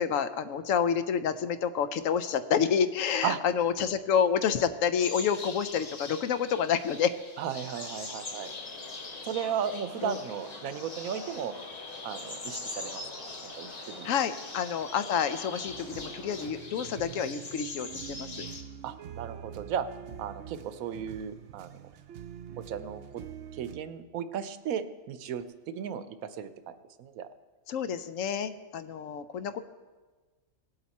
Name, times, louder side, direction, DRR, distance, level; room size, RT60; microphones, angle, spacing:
voice 1, 0.0-7.1 10.0-10.2 14.0-18.5 27.7-29.6, left 7 dB, 70° left, 11 dB, 1.0 m, -28 dB
sound 1, 5.0-18.6, left 3 dB, 35° left, 0.9 m, -43 dB
voice 2, 7.4-8.5 9.2-11.6 12.0-13.0 13.4-14.1 18.8-19.9 20.2-21.7 22.6-23.2 23.6-27.3, right 8 dB, 85° right, 12 dB, 1.1 m, -35 dB
sound 2, 7.6-16.5, left 2 dB, 90° left, 4.6 m, -47 dB
sound 3, 15.7-23.8, right 8 dB, 65° right, 0.8 m, -45 dB
17.5 x 8.0 x 4.2 m, 1.3 s
omnidirectional pair, 1.4 m